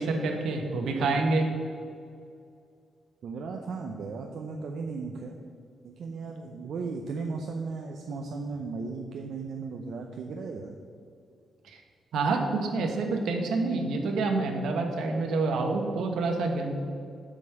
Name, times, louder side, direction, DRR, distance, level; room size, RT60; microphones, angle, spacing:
voice 1, 0.0-1.5 11.6-11.8 12.1-16.7, right 3 dB, 85° right, 3 dB, 1.3 m, -27 dB
voice 2, 3.2-5.4 5.8-10.8, right 4 dB, 60° right, 2 dB, 0.6 m, -36 dB
8.3 x 5.3 x 6.8 m, 2.3 s
wide cardioid pair, 165°, 0 cm